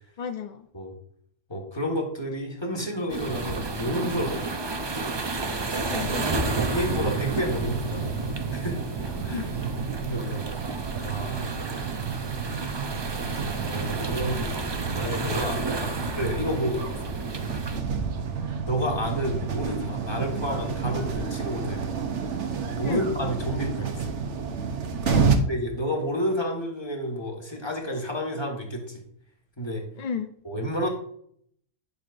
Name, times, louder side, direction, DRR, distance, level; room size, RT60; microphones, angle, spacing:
voice 1, 0.2-0.7 5.7-6.5 9.3-9.5 22.8-23.1 25.0-25.4 30.0-30.3, left 6 dB, 65° left, 7 dB, 0.4 m, -32 dB
voice 2, 1.5-4.6 6.0-6.1 6.4-8.8 9.2-9.5 10.0-10.6 11.0-11.5 13.6-14.5 14.9-17.1 18.6-21.8 22.7-24.1 25.5-29.0 29.6-29.8 30.4-30.9, equal, 20° left, 0 dB, 1.6 m, -30 dB
sound 1, 3.1-17.8, right 3 dB, 30° right, 0.5 m, -31 dB
sound 2, 6.4-25.4, right 6 dB, 70° right, 1.2 m, -31 dB
10.5 x 6.3 x 2.6 m, 0.66 s
omnidirectional pair, 1.3 m